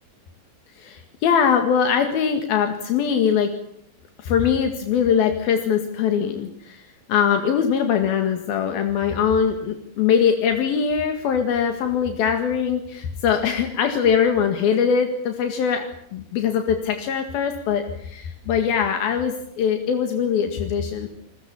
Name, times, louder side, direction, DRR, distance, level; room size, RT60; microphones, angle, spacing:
voice 1, 0.8-3.5 4.2-15.9 16.1-21.1, left 7 dB, 80° left, 5 dB, 3.7 m, -22 dB
29.5 x 21.0 x 7.1 m, 0.72 s
omnidirectional pair, 4.2 m